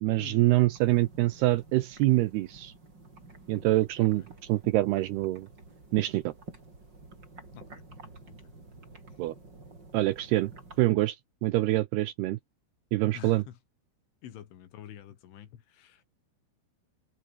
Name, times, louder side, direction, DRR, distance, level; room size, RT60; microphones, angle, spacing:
voice 1, 0.0-2.7 3.5-4.2 4.5-5.5 5.9-6.3 9.2-9.4 9.9-10.5 10.8-12.4 12.9-13.4, right 17 dB, 80° right, 2.4 m, -25 dB
sound 1, 0.7-10.8, right 3 dB, 20° right, 5.9 m, -50 dB
voice 2, 7.5-8.0 8.3-8.5 13.1-13.6 14.2-16.0, left 11 dB, 85° left, 4.9 m, -48 dB
open air
omnidirectional pair, 5.4 m